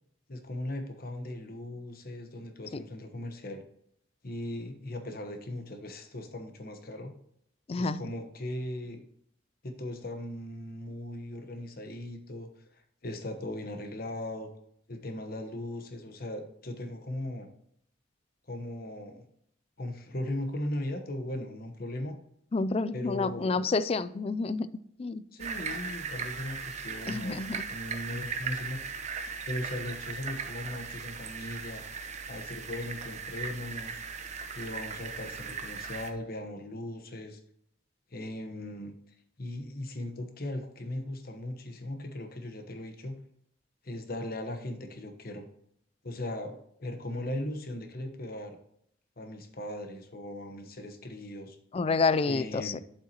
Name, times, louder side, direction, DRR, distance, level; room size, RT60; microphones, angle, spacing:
voice 1, 0.3-3.6 4.2-7.1 7.8-9.0 9.6-14.5 14.9-17.5 18.5-19.2 19.8-22.2 22.9-23.7 25.3-28.8 29.4-31.8 32.3-34.0 34.5-37.4 38.1-38.9 39.4-43.2 43.8-45.5 46.0-48.6 49.2-51.6 52.3-52.8, left 1 dB, 50° left, 6 dB, 1.1 m, -38 dB
voice 2, 7.7-8.0 22.5-24.7 25.0-25.2 27.1-27.6 51.7-52.8, left 4 dB, 30° left, 16 dB, 0.3 m, -29 dB
sound 1, 25.4-36.1, right 5 dB, 35° right, 0.7 m, -38 dB
8.7 x 7.5 x 2.9 m, 0.70 s
head